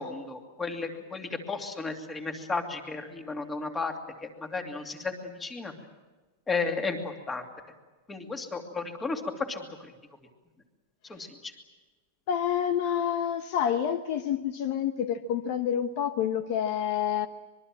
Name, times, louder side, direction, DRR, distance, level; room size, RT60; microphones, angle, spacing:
voice 1, 0.0-3.9 4.2-5.7 6.5-7.5 8.1-9.2 9.5-9.6 11.1-11.5, left 4 dB, 15° left, 2.6 m, -34 dB
voice 2, 12.3-17.3, left 9 dB, 50° left, 1.1 m, -28 dB
25.0 x 22.0 x 7.6 m
supercardioid pair, 155°, 0 cm